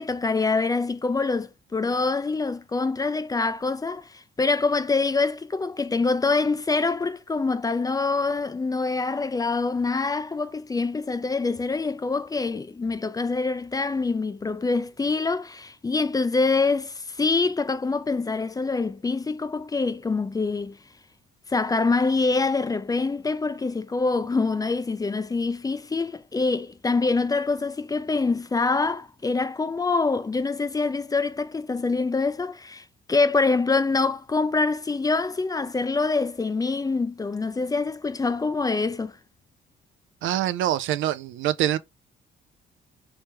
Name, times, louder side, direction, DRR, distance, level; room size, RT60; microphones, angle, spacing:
voice 1, 0.0-20.8 21.5-39.2, left 3 dB, 20° left, 0.4 m, -25 dB
voice 2, 40.2-41.8, right 12 dB, 75° right, 0.4 m, -25 dB
3.3 x 3.1 x 2.9 m
cardioid pair, 90°, 20 cm